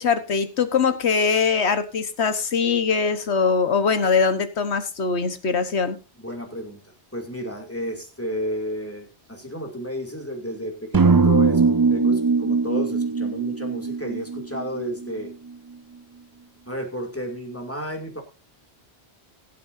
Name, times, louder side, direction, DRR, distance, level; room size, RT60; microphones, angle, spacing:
voice 1, 0.0-6.0, left 5 dB, 70° left, 10 dB, 1.5 m, -22 dB
voice 2, 6.2-6.8 7.1-15.3 16.7-18.2, equal, 10° left, 2 dB, 2.6 m, -32 dB
sound 1, 10.9-15.1, right 4 dB, 35° right, 0.3 m, -20 dB
21.0 x 8.5 x 2.7 m, 0.29 s
omnidirectional pair, 1.1 m